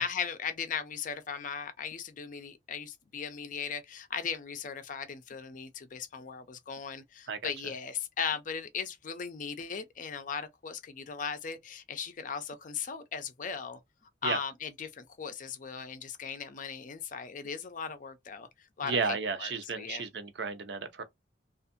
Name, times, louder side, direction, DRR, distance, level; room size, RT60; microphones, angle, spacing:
voice 1, 0.0-13.8 14.2-18.5 18.8-20.0, left 6 dB, 45° left, 0.5 m, -38 dB
voice 2, 18.8-21.0, right 4 dB, 70° right, 0.6 m, -33 dB
2.6 x 2.4 x 2.5 m
head